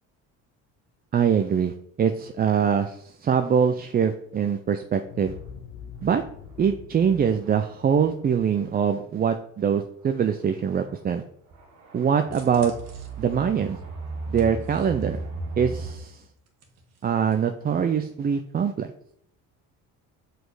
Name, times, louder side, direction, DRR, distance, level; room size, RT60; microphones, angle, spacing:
voice 1, 1.1-1.7 2.0-5.3 6.0-6.2 6.6-11.2 11.9-12.7 13.2-13.8 14.3-15.2 15.6-16.2 17.0-18.9, right 7 dB, 30° right, 7 dB, 0.5 m, -23 dB
sound 1, 5.1-9.8, left 7 dB, 85° left, 1.0 m, -45 dB
sound 2, 6.6-6.7 7.4-7.7 8.7-8.8 10.7-11.0 11.5-15.9, right 3 dB, 65° right, 2.2 m, -36 dB
sound 3, 12.3-15.2 15.7-17.4 17.7-17.8, right 3 dB, 50° right, 1.6 m, -49 dB
6.0 x 5.2 x 4.8 m, 0.68 s
cardioid pair, 105°, 33 cm